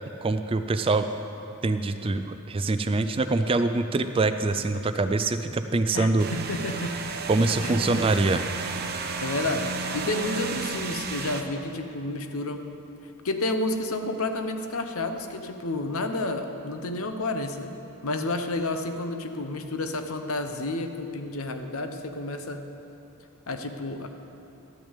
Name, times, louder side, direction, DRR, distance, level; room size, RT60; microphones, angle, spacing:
voice 1, 0.2-1.1 1.6-6.3 7.3-8.4, right 3 dB, 25° right, 9 dB, 0.3 m, -24 dB
voice 2, 5.9-6.9 7.6-8.1 9.2-9.7 9.9-12.6 13.2-17.7 18.0-22.6 23.5-24.1, left 2 dB, 70° left, 7 dB, 0.9 m, -30 dB
sound 1, 6.2-11.4, right 4 dB, 45° right, 0.7 m, -32 dB
12.5 x 6.3 x 8.2 m, 3.0 s
head